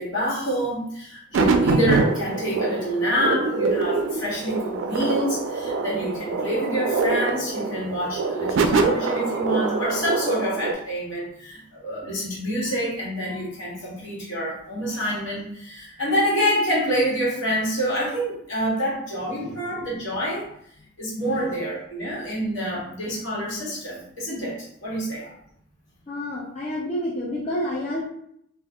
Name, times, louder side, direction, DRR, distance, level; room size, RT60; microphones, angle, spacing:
voice 1, 0.0-20.5 21.0-25.4, equal, 75° left, -5 dB, 1.3 m, -27 dB
sound 1, 1.3-10.7, right 3 dB, 75° right, 0.3 m, -24 dB
voice 2, 26.1-28.0, left 1 dB, 35° left, -5 dB, 0.5 m, -29 dB
2.6 x 2.4 x 3.4 m, 0.70 s
head